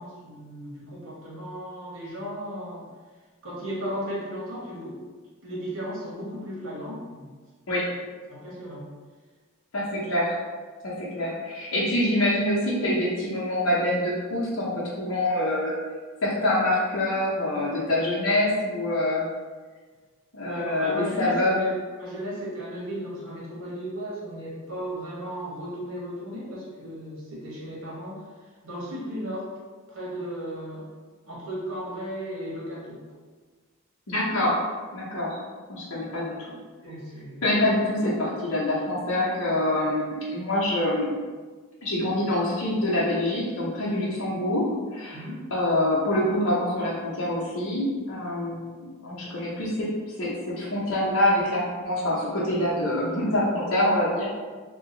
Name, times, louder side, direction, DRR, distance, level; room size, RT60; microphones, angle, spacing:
voice 1, 0.0-2.9 3.4-5.0 5.4-7.3 8.3-8.8 20.4-21.7 22.0-28.3 28.6-29.5 29.9-30.8 31.3-33.0 36.8-37.4 45.1-45.5, equal, 65° right, -6 dB, 1.2 m, -35 dB
voice 2, 9.7-10.4 10.8-15.8 16.2-19.3 20.3-21.7 34.1-34.6 34.9-35.4 35.7-36.5 37.4-41.1 41.8-44.7 44.9-45.2 45.5-49.9 50.2-54.4, left 1 dB, 75° left, -6 dB, 0.9 m, -25 dB
2.9 x 2.4 x 3.8 m, 1.4 s
head